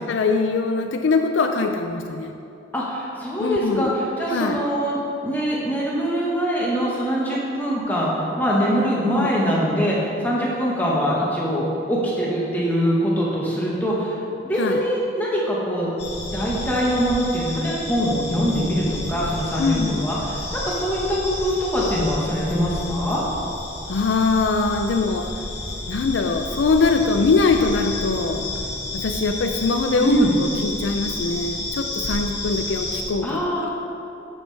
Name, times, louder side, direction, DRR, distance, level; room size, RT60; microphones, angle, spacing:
voice 1, 0.1-2.3 3.4-3.9 4.3-4.6 9.1-9.3 14.6-14.8 19.6-20.1 23.9-25.3 25.9-28.5 28.9-33.7, left 4 dB, 90° left, 5 dB, 0.4 m, -22 dB
voice 2, 2.7-14.2 14.4-15.9 16.2-23.2 30.0-30.3 33.2-33.6, equal, 10° left, -5 dB, 1.3 m, -23 dB
sound 1, 16.0-33.0, left 2 dB, 65° left, 1.7 m, -31 dB
10.0 x 7.3 x 3.4 m, 2.7 s
head